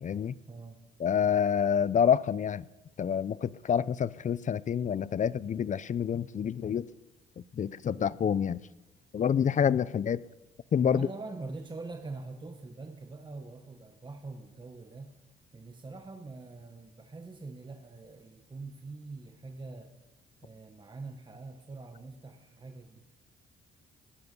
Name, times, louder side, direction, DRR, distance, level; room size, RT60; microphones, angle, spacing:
voice 1, 0.0-0.4 1.0-2.6 3.0-6.9 7.6-8.6 9.1-10.2 10.7-11.1, left 8 dB, 40° left, 0.5 m, -27 dB
voice 2, 10.9-15.2 15.5-20.0 20.4-23.0, right 3 dB, 25° right, 1.2 m, -44 dB
20.0 x 9.5 x 5.4 m
cardioid pair, 90°, 20 cm